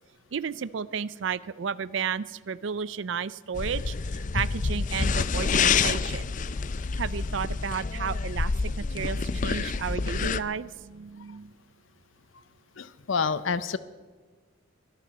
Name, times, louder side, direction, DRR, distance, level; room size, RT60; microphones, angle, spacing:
voice 1, 0.3-6.2 7.0-11.5, right 6 dB, 70° right, 18 dB, 0.5 m, -33 dB
sound 1, 3.6-10.4, left 5 dB, 40° left, 0.5 m, -28 dB
voice 2, 12.8-13.8, left 5 dB, 80° left, 15 dB, 0.6 m, -28 dB
22.5 x 12.0 x 4.2 m, 1.5 s
head